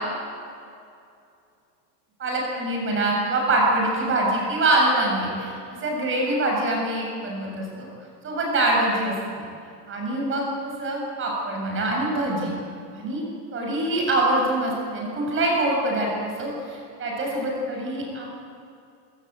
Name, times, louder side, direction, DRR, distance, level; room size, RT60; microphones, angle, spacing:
voice 1, 2.2-7.9 8.2-9.5 9.9-12.6 12.9-13.2 13.5-18.3, right 2 dB, 25° right, -1 dB, 7.0 m, -24 dB
29.0 x 17.0 x 8.1 m, 2.5 s
supercardioid pair, 150°, 49 cm